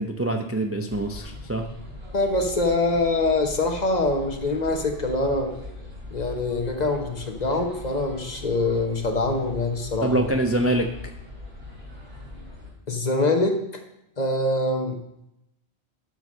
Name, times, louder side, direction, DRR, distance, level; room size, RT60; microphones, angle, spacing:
voice 1, 0.0-1.7 10.0-10.9, right 1 dB, 20° right, 4 dB, 0.4 m, -25 dB
sound 1, 0.9-12.7, left 2 dB, 60° right, 3.6 m, -41 dB
voice 2, 2.1-5.5 6.1-10.2 12.9-13.8 14.2-15.0, left 2 dB, 40° left, 4 dB, 1.1 m, -24 dB
11.5 x 4.0 x 6.2 m, 0.82 s
omnidirectional pair, 1.1 m